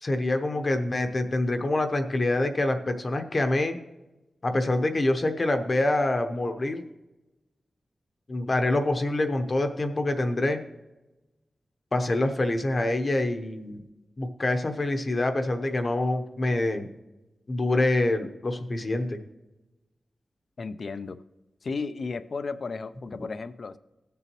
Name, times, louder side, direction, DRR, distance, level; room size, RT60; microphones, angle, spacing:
voice 1, 0.0-3.8 4.4-6.8 8.3-10.6 11.9-13.8 14.2-16.9 17.5-19.2, left 2 dB, 35° left, 7 dB, 0.8 m, -26 dB
voice 2, 20.6-21.2 21.6-23.8, left 4 dB, 55° left, 13 dB, 0.5 m, -34 dB
17.0 x 6.9 x 3.0 m, 1.0 s
wide cardioid pair, 145°, 0 cm